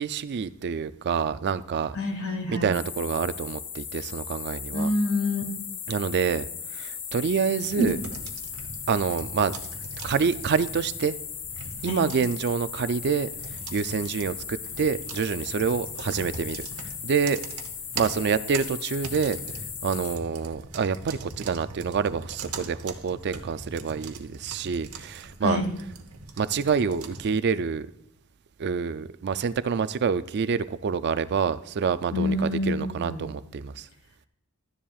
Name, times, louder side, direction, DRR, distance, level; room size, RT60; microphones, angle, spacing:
voice 1, 0.0-2.0 2.5-4.9 5.9-6.5 6.7-8.0 8.9-9.5 10.0-11.2 11.8-13.3 13.7-16.7 17.0-17.4 17.9-19.4 19.8-25.6 26.4-27.9 28.6-33.9, right 6 dB, 50° right, 14 dB, 0.4 m, -27 dB
voice 2, 1.9-2.7 4.7-5.4 7.8-7.9 11.9-12.0 25.4-25.7 32.1-33.3, left 2 dB, 70° left, 4 dB, 1.8 m, -27 dB
sound 1, 2.7-20.2, left 7 dB, 40° left, 0.9 m, -37 dB
sound 2, 7.6-27.3, right 4 dB, 75° right, 1.0 m, -41 dB
12.5 x 10.0 x 2.4 m, 0.77 s
head